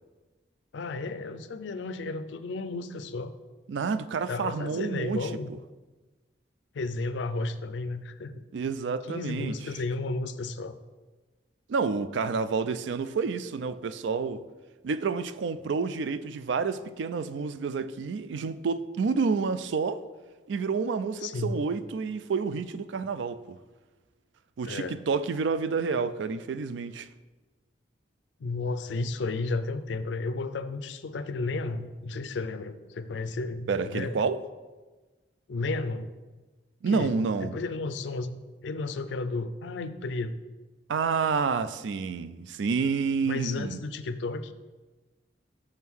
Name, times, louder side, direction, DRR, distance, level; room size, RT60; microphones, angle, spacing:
voice 1, 0.7-3.4 4.3-5.5 6.7-8.4 9.1-10.8 21.2-21.6 24.6-25.0 28.4-34.2 35.5-36.1 36.9-40.4 43.3-44.5, left 3 dB, 75° left, 0.4 m, -33 dB
voice 2, 3.7-5.3 8.5-9.5 11.7-14.4 14.8-20.0 20.5-23.6 24.6-27.1 33.7-34.4 36.8-37.6 40.9-43.8, right 5 dB, 80° right, 0.4 m, -29 dB
6.5 x 3.7 x 6.1 m
head